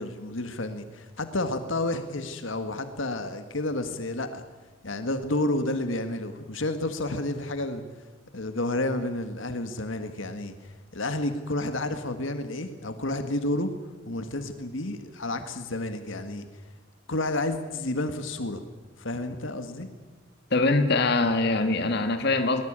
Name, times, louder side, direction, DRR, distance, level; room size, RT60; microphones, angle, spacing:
voice 1, 0.0-4.4 4.8-8.0 8.3-13.7 14.1-16.5 17.1-18.6 19.0-19.9, left 2 dB, 75° left, 8 dB, 1.8 m, -30 dB
voice 2, 20.5-22.6, left 3 dB, 55° left, 7 dB, 1.9 m, -23 dB
21.5 x 20.0 x 8.9 m, 1.2 s
head